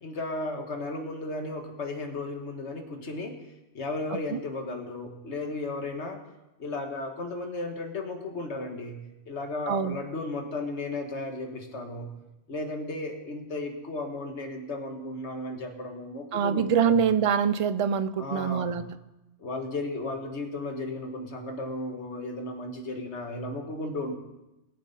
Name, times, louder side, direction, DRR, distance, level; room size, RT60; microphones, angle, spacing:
voice 1, 0.0-3.4 3.7-6.2 6.6-9.0 9.3-12.1 12.5-17.0 18.2-18.8 19.4-24.1, left 2 dB, 80° left, 4 dB, 1.8 m, -34 dB
voice 2, 9.7-10.0 16.3-19.0, right 7 dB, 45° right, 12 dB, 0.5 m, -25 dB
21.0 x 7.7 x 4.2 m, 0.99 s
omnidirectional pair, 1.1 m